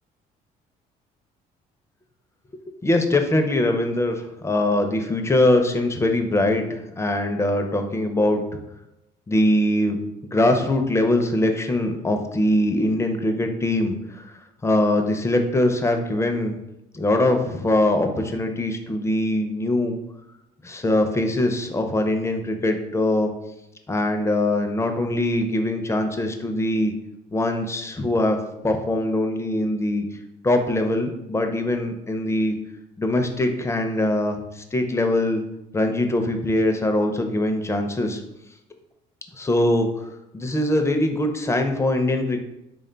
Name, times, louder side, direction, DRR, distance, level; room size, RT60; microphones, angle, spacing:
voice 1, 2.8-8.6 9.3-14.3 14.6-16.6 16.9-20.0 20.6-23.3 23.9-26.9 27.3-28.4 28.6-30.0 30.4-32.6 33.0-35.4 35.7-38.2 39.4-40.1 40.3-42.4, left 1 dB, 15° left, 5 dB, 0.4 m, -22 dB
3.5 x 2.2 x 3.7 m, 0.87 s
cardioid pair, 110°, 17 cm